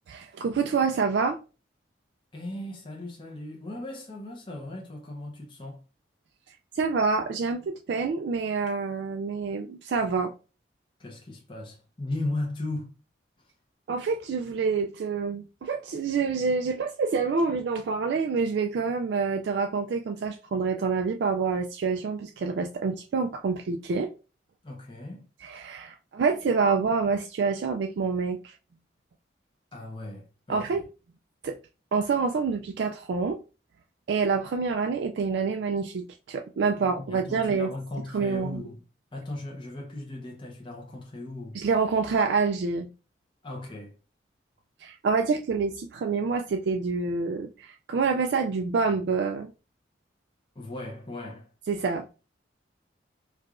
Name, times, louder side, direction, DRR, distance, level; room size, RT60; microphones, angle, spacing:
voice 1, 0.1-1.4 6.8-10.3 13.9-24.1 25.4-28.6 30.5-30.8 31.4-31.6 31.9-33.4 34.1-37.7 38.1-38.6 41.5-42.9 44.8-49.5 51.7-52.1, right 5 dB, 65° right, 0.3 m, -27 dB
voice 2, 2.3-5.8 11.0-13.0 13.4-13.5 24.6-25.3 29.7-30.9 36.8-38.8 39.1-41.6 43.4-44.0 50.5-51.5, left 2 dB, 25° left, 0.7 m, -37 dB
4.6 x 2.3 x 2.4 m
head